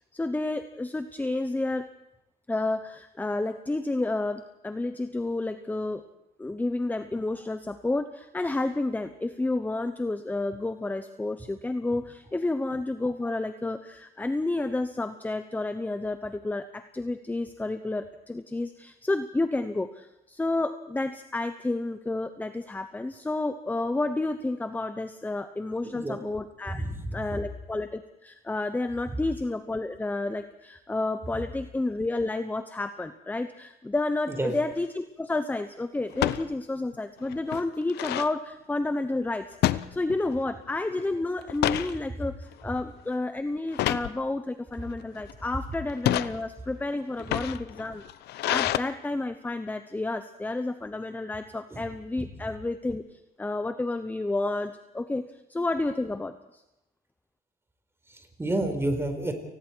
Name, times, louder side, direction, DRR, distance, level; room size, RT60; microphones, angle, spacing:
voice 1, 0.1-1.9 2.5-6.0 6.4-48.0 48.4-53.0 53.4-56.6, left 2 dB, 10° left, 10 dB, 1.0 m, -30 dB
voice 2, 25.8-26.2 26.7-27.2 34.3-34.6 51.7-51.8 52.2-52.3 58.1-59.3, right 1 dB, 15° right, 6 dB, 4.6 m, -30 dB
sound 1, 34.4-34.7 36.1-36.4 36.9-37.0 37.3-38.3 39.6-40.4 40.8-41.0 41.4-41.9 42.5-42.8 43.7-44.1 44.9-45.3 45.9-46.3 47.1-48.8, left 14 dB, 75° left, 0.8 m, -28 dB
29.5 x 20.0 x 4.7 m, 0.89 s
cardioid pair, 110°, 17 cm